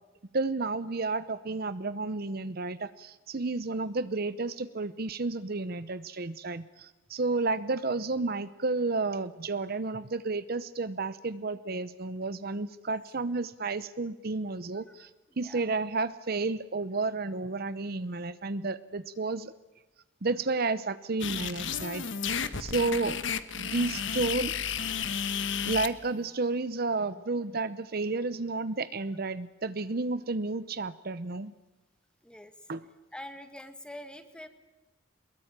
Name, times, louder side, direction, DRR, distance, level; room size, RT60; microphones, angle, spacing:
voice 1, 0.3-15.1 15.4-19.5 20.2-22.1 22.6-23.2 23.5-24.5 25.6-31.5 32.7-32.8, right 3 dB, 50° right, 14 dB, 0.8 m, -31 dB
voice 2, 14.9-15.6 22.4-22.6 25.3-25.7 32.2-32.7 33.1-34.5, left 1 dB, 5° left, 9 dB, 1.7 m, -46 dB
sound 1, 21.2-25.9, left 7 dB, 65° left, 1.2 m, -32 dB
23.5 x 21.5 x 8.9 m, 1.1 s
head